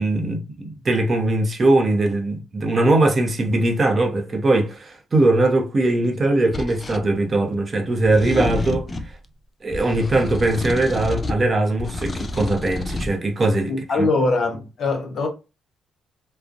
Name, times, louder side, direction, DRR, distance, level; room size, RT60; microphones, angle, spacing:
voice 1, 0.0-8.9 9.6-13.7 14.0-14.1, right 2 dB, 35° right, 0.6 m, -20 dB
sound 1, 6.5-7.0 8.0-9.1 9.7-11.5 11.8-13.1, left 2 dB, 30° left, 0.4 m, -29 dB
voice 2, 13.7-15.3, left 3 dB, 60° left, 0.8 m, -22 dB
2.5 x 2.0 x 2.4 m
cardioid pair, 90°, 0 cm